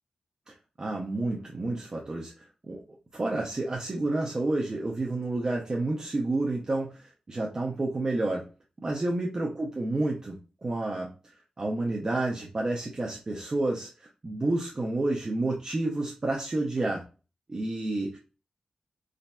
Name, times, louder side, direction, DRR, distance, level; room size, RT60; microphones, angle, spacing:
voice 1, 0.5-2.3 2.6-2.8 3.1-8.4 8.8-17.0 17.5-18.2, right 2 dB, 35° right, -2 dB, 0.6 m, -30 dB
4.0 x 2.6 x 2.2 m, 0.33 s
wide cardioid pair, 115°, 2 cm